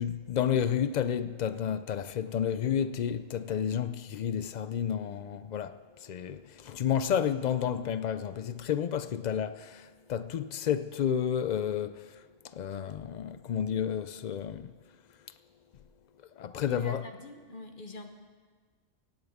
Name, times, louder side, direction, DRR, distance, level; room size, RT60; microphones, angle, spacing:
voice 1, 0.0-5.7 6.1-9.8 10.1-12.0 12.6-14.7 16.4-17.0, left 8 dB, 75° left, 0.4 m, -31 dB
voice 2, 16.7-18.1, left 1 dB, 45° left, 1.1 m, -44 dB
17.5 x 15.5 x 3.6 m
omnidirectional pair, 1.3 m